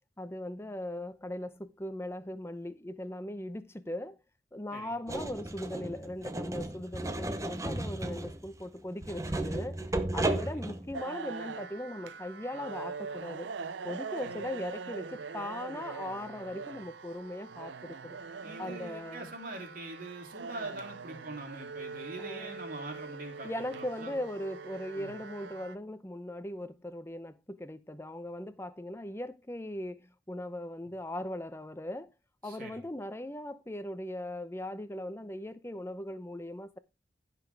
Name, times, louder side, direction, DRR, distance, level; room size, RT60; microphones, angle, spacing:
voice 1, 0.2-4.2 4.5-9.8 10.1-13.5 13.8-18.2 18.6-19.3 22.2-22.6 23.4-32.1 32.4-36.8, left 1 dB, 15° left, 0.7 m, -39 dB
sound 1, 5.1-11.0, right 2 dB, 15° right, 0.8 m, -34 dB
voice 2, 10.3-10.6 14.2-14.3 18.4-24.2 25.0-25.1 32.4-32.8, right 2 dB, 50° right, 3.3 m, -44 dB
sound 2, 10.9-25.7, right 5 dB, 80° right, 0.6 m, -42 dB
15.5 x 5.9 x 3.4 m
head